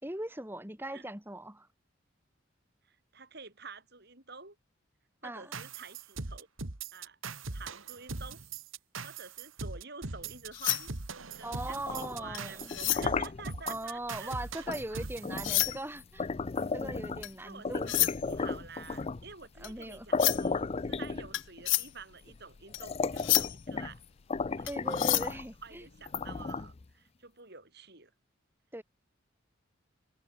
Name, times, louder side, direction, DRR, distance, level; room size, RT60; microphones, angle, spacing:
voice 1, 0.0-1.7 5.2-5.6 11.4-12.7 13.7-16.3 16.7-17.9 19.6-20.1 24.6-25.9 26.3-26.4 28.7-28.8, right 1 dB, 10° right, 4.1 m, -40 dB
voice 2, 2.9-4.6 5.2-6.5 6.9-7.2 7.5-8.4 9.0-10.9 11.4-15.1 17.4-24.0 24.6-24.7 25.2-28.1, right 4 dB, 55° right, 6.5 m, -49 dB
sound 1, 5.5-15.6, right 4 dB, 85° right, 1.9 m, -41 dB
sound 2, 10.2-15.0 15.3-26.3, left 18 dB, 70° left, 0.7 m, -33 dB
sound 3, 11.7-13.8 14.7-14.9 15.2-17.3 17.6-19.3 19.8-19.9 20.1-21.6 22.3-22.4 22.7-24.0 24.3-25.4 26.0-26.8, left 4 dB, 30° left, 0.4 m, -34 dB
head